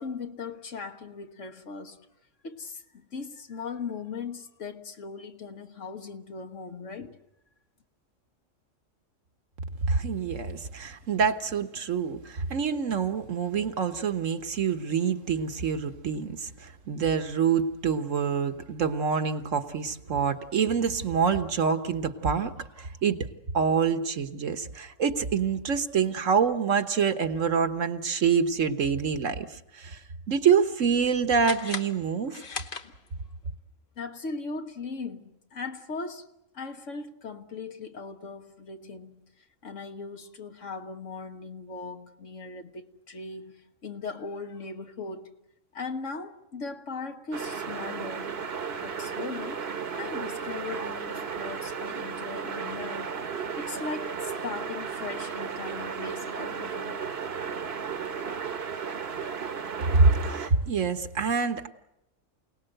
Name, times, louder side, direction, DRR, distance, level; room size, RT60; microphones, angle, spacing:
voice 1, 0.0-2.1 2.4-7.2 34.0-36.3 36.5-39.2 39.6-45.3 45.7-48.4 48.8-49.7 50.0-53.2 53.6-57.1, left 4 dB, 70° left, 1.7 m, -38 dB
voice 2, 9.9-23.3 23.5-32.4 59.9-61.7, right 6 dB, 75° right, 1.6 m, -26 dB
sound 1, 31.4-33.4, left 4 dB, 45° left, 1.2 m, -38 dB
sound 2, 47.3-60.5, right 6 dB, 55° right, 1.3 m, -34 dB
28.0 x 18.5 x 7.9 m
omnidirectional pair, 1.3 m